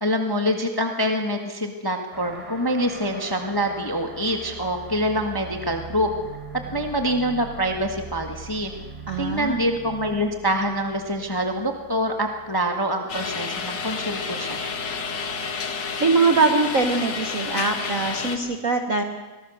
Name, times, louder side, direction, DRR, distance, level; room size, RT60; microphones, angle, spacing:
voice 1, 0.0-6.1 6.7-8.7 9.2-14.7, equal, 30° left, 3 dB, 0.4 m, -25 dB
sound 1, 2.1-13.1, right 4 dB, 25° right, 5.1 m, -41 dB
voice 2, 9.1-9.7 16.0-19.0, right 3 dB, 85° right, 5 dB, 0.7 m, -22 dB
sound 2, 13.1-18.4, left 5 dB, 45° left, 1.6 m, -30 dB
24.5 x 18.0 x 6.5 m, 1.2 s
omnidirectional pair, 3.3 m